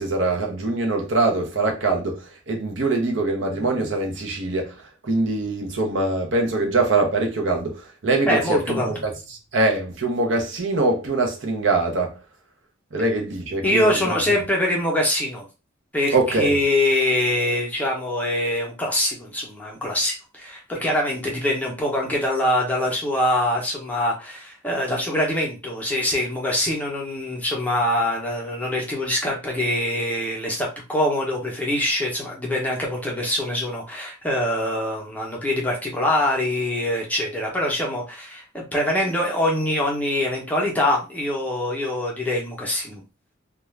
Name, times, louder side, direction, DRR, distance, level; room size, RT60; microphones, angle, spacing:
voice 1, 0.0-4.7 5.0-9.1 9.5-12.2 12.9-14.1 16.1-16.6, right 2 dB, 60° right, 0.7 m, -23 dB
voice 2, 8.3-9.0 13.6-15.4 15.9-43.0, left 1 dB, 10° left, 0.7 m, -24 dB
2.4 x 2.3 x 3.1 m
head